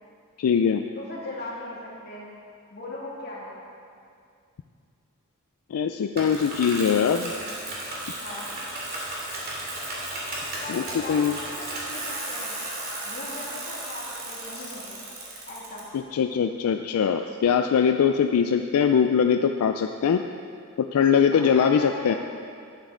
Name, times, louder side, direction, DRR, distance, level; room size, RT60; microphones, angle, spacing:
voice 1, 0.4-0.8 5.7-7.3 10.7-11.4 15.9-20.2 20.8-22.1, left 7 dB, 85° left, 6 dB, 0.3 m, -22 dB
voice 2, 1.0-2.3 2.7-3.6 8.2-8.5 10.6-12.5 13.0-15.0 15.5-15.9 21.3-22.2, left 2 dB, 50° left, -6 dB, 2.5 m, -38 dB
Bicycle, 6.2-15.8, right 1 dB, 45° right, 2.4 m, -34 dB
10.5 x 9.2 x 3.8 m, 2.3 s
head